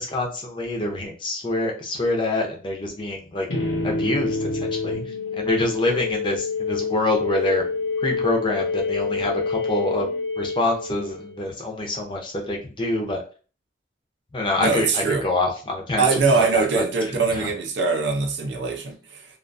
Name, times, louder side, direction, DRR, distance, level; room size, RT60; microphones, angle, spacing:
voice 1, 0.0-3.5 3.8-7.6 8.0-10.1 10.4-13.2 14.3-17.5, left 2 dB, 25° left, 1 dB, 0.5 m, -26 dB
sound 1, 3.5-11.4, left 4 dB, 85° left, 0.8 m, -27 dB
voice 2, 14.6-15.2 16.0-19.3, right 4 dB, 65° right, 4 dB, 0.5 m, -22 dB
2.4 x 2.3 x 2.5 m, 0.37 s
head